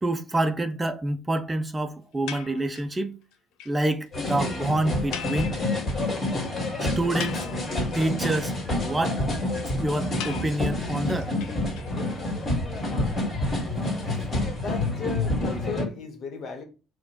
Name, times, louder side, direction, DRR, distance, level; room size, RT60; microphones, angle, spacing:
voice 1, 0.0-3.2 3.7-5.5 6.8-7.5 7.9-9.2 9.8-11.3, right 1 dB, 20° right, 0.4 m, -27 dB
sound 1, 2.3-3.0 3.3-3.4 3.6-3.7 4.0-4.1 4.3-4.4 5.1-6.1 6.4-6.5 6.9-7.9 10.2-12.2, left 8 dB, 80° left, 0.6 m, -39 dB
sound 2, 4.1-15.9, left 1 dB, 35° left, 1.9 m, -28 dB
voice 2, 14.5-16.6, left 5 dB, 60° left, 1.2 m, -36 dB
4.6 x 2.2 x 4.2 m
supercardioid pair, 90°, 0 cm